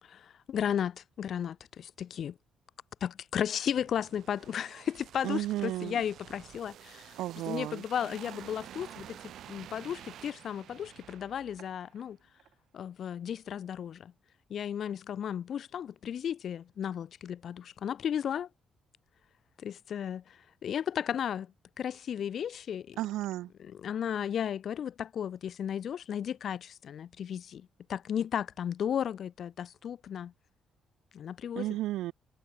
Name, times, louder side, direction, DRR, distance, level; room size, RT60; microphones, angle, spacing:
voice 1, 0.0-2.4 3.0-7.2 7.5-12.2 12.7-14.1 14.5-18.5 19.6-23.0 23.6-30.3 31.1-31.7, left 9 dB, 60° left, 0.5 m, -34 dB
sound 1, 3.7-12.1 12.4-12.5, right 11 dB, 75° right, 1.7 m, -50 dB
voice 2, 5.2-6.0 7.2-7.8 23.0-23.5 31.6-32.1, right 15 dB, 90° right, 0.5 m, -33 dB
cardioid pair, 90°, 0 cm